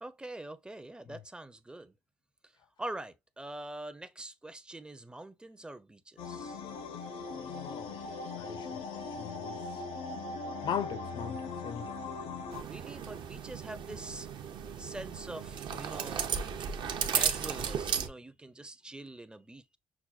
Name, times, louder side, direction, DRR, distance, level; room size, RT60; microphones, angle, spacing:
voice 1, 0.0-1.9 2.4-2.5 2.8-6.6 12.6-14.3 14.8-16.4 17.1-19.8, right 1 dB, 10° right, 0.4 m, -44 dB
sound 1, 6.2-12.6, left 4 dB, 85° left, 0.8 m, -40 dB
voice 2, 7.3-8.0 8.3-8.8 9.2-9.6 10.6-11.9, left 8 dB, 55° left, 0.4 m, -39 dB
sound 2, 12.5-18.1, right 7 dB, 55° right, 0.5 m, -35 dB
5.9 x 2.1 x 2.3 m
cardioid pair, 100°, 9 cm